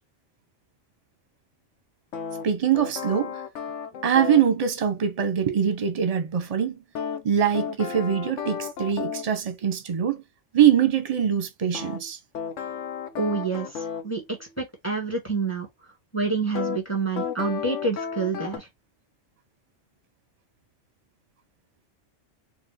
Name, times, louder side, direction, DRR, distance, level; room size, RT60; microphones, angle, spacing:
sound 1, 2.1-4.5 7.0-9.3 11.7-14.1 16.6-16.8 17.2-18.6, left 7 dB, 75° left, 1.1 m, -33 dB
voice 1, 2.4-3.4 4.0-6.8 7.2-10.2 10.5-12.2, right 8 dB, 35° right, 0.8 m, -23 dB
voice 2, 13.2-15.7 16.1-18.7, right 4 dB, 10° left, 1.3 m, -28 dB
4.4 x 2.3 x 3.4 m
omnidirectional pair, 1.3 m